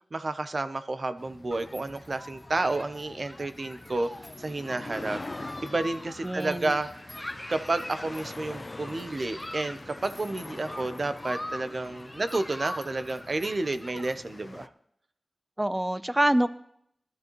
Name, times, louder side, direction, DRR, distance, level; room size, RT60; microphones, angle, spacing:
voice 1, 0.1-4.1 4.4-7.1 7.5-14.7, right 2 dB, 50° right, 10 dB, 0.8 m, -31 dB
sound 1, 1.2-14.7, left 2 dB, 40° left, 0.5 m, -45 dB
Human group actions, 1.5-14.2, left 1 dB, 10° left, 1.2 m, -43 dB
voice 2, 6.2-6.8 15.6-16.5, right 1 dB, 15° right, 13 dB, 0.6 m, -25 dB
19.5 x 12.5 x 3.1 m, 0.71 s
wide cardioid pair, 80°, 0 cm